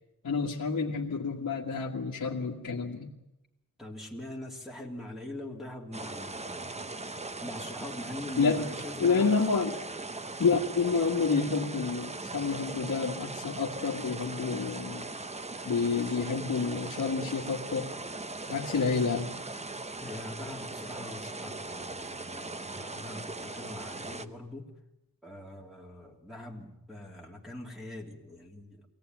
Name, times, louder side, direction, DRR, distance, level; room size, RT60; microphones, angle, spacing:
voice 1, 0.2-3.1 8.4-8.7 9.0-9.8 10.4-15.1 15.6-17.9 18.5-19.3, left 5 dB, 60° left, -3 dB, 1.9 m, -29 dB
voice 2, 3.8-6.9 7.4-9.3 20.0-24.7 25.2-28.9, left 1 dB, ahead, -3 dB, 2.8 m, -43 dB
sound 1, 5.9-24.3, right 2 dB, 20° right, 0.8 m, -39 dB
23.5 x 17.5 x 9.3 m, 0.93 s
wide cardioid pair, 145°, 34 cm